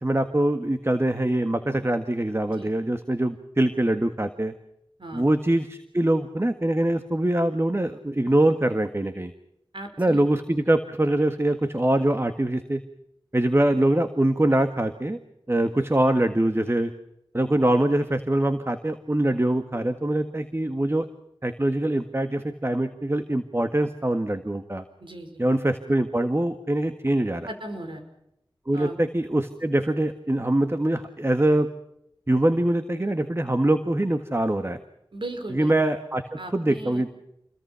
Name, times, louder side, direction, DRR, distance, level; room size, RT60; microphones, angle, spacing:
voice 1, 0.0-4.5 5.1-9.3 10.0-12.8 13.3-15.2 15.5-16.9 17.3-21.1 21.4-24.8 25.4-27.5 28.7-31.7 32.3-34.8 35.5-36.2 36.5-37.2, right 1 dB, 30° right, 8 dB, 1.7 m, -23 dB
voice 2, 9.7-10.3 25.0-25.4 27.4-28.0 28.7-29.0 35.1-35.7 36.4-37.0, right 1 dB, 75° right, 6 dB, 5.0 m, -37 dB
28.5 x 22.5 x 5.8 m, 0.81 s
wide cardioid pair, 50°, 9 cm